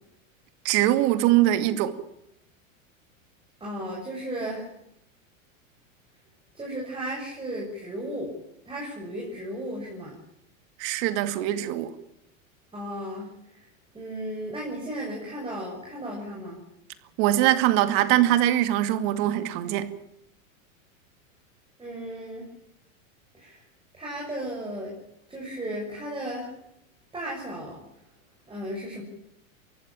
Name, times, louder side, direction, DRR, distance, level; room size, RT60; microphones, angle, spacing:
voice 1, 0.6-2.0 10.8-11.9 17.2-19.9, right 13 dB, 55° right, 2.4 m, -22 dB
voice 2, 3.6-4.7 6.5-8.3 8.6-10.1 12.7-13.6 13.9-16.6 21.8-22.5 23.3-23.6 23.9-24.9 25.3-26.5 27.1-27.8 28.5-29.0, right 1 dB, 15° right, 6.8 m, -35 dB
23.5 x 15.5 x 9.0 m
supercardioid pair, 120°, 41 cm